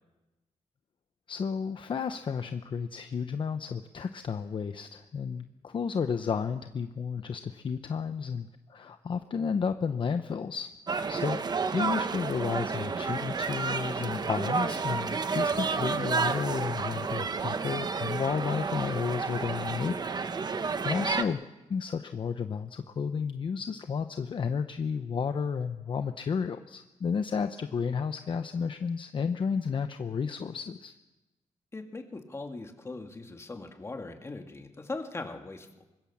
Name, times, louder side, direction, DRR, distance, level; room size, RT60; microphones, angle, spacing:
voice 1, 1.3-10.7 11.1-11.4 11.7-21.4 21.7-30.9, left 6 dB, 45° left, 9 dB, 0.8 m, -32 dB
sound 1, 10.9-21.2, right 4 dB, 35° right, 1.0 m, -31 dB
voice 2, 31.7-35.7, left 3 dB, 20° left, 5 dB, 2.1 m, -40 dB
25.0 x 21.0 x 7.2 m, 1.1 s
wide cardioid pair, 150°, 12 cm